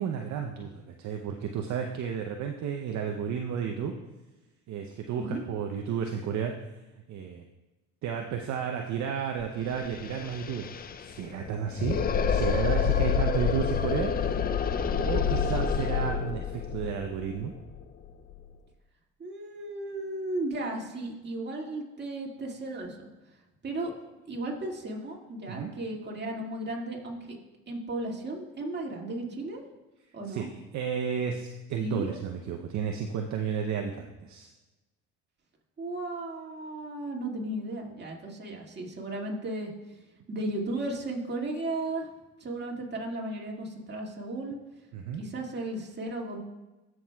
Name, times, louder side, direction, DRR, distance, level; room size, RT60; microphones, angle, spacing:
voice 1, 0.0-3.9 4.7-6.5 7.1-7.4 8.0-12.0 12.3-14.4 15.1-17.5 25.5-25.7 30.3-30.4 30.7-34.5 44.9-45.2, right 7 dB, 55° right, 3 dB, 0.7 m, -32 dB
voice 2, 5.1-5.4 19.2-23.1 23.6-23.9 24.3-27.4 27.7-29.6 30.1-30.5 31.8-32.2 35.8-39.7 40.3-42.1 42.4-44.6 45.2-46.4, right 2 dB, 30° right, 0 dB, 2.0 m, -35 dB
sound 1, 9.4-9.5 9.7-18.5, left 6 dB, 25° left, 0.4 m, -28 dB
14.0 x 6.2 x 2.3 m, 1.1 s
supercardioid pair, 75°, 35 cm